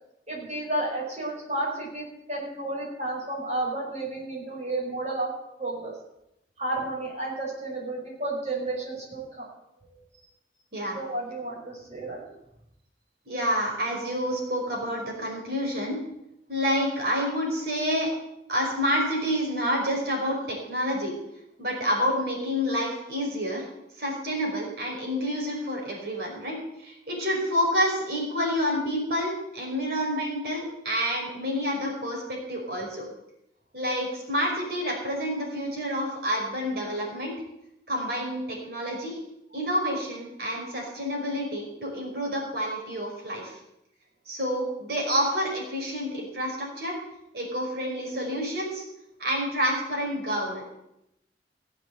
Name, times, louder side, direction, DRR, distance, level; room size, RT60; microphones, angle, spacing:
voice 1, 0.3-5.9 6.6-9.5 9.9-10.0 10.9-12.2, right 2 dB, 40° right, -3 dB, 5.9 m, -32 dB
voice 2, 13.3-16.0 16.5-18.1 18.5-21.1 21.6-23.7 24.0-33.0 33.7-37.3 37.9-39.2 39.5-43.6 44.3-47.0 47.3-48.8 49.2-50.8, equal, 60° right, -1 dB, 5.3 m, -28 dB
17.5 x 7.8 x 8.0 m, 0.83 s
head